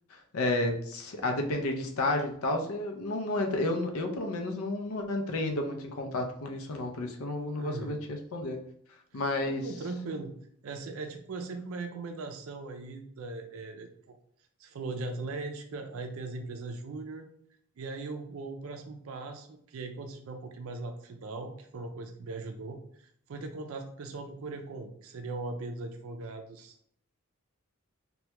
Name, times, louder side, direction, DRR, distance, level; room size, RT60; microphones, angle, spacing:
voice 1, 0.1-8.6 9.1-9.7, left 2 dB, 80° left, 4 dB, 0.5 m, -31 dB
voice 2, 7.5-8.0 9.1-10.3 10.6-14.2 14.6-17.3 17.8-26.8, right 3 dB, 70° right, 5 dB, 0.4 m, -39 dB
2.9 x 2.2 x 3.3 m, 0.64 s
head